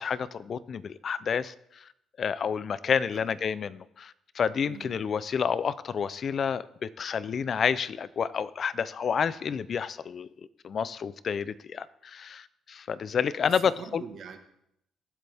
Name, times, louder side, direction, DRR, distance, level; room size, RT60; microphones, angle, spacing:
voice 1, 0.0-1.9 2.2-10.3 10.6-14.0, left 7 dB, 50° left, 17 dB, 0.5 m, -29 dB
voice 2, 13.4-14.4, right 6 dB, 65° right, 6 dB, 1.6 m, -44 dB
22.5 x 7.8 x 3.5 m, 0.78 s
cardioid pair, 90°, 0 cm